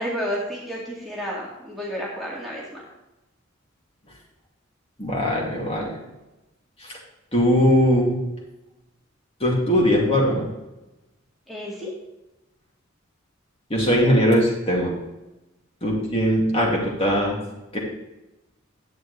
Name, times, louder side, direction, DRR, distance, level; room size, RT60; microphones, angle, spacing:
voice 1, 0.0-2.8 11.5-11.9, equal, ahead, -6 dB, 2.1 m, -31 dB
voice 2, 5.0-5.9 7.3-8.1 9.4-10.5 13.7-14.9 15.8-17.4 17.7-17.8, equal, 30° left, -3 dB, 2.5 m, -20 dB
11.0 x 8.9 x 3.3 m, 0.99 s
head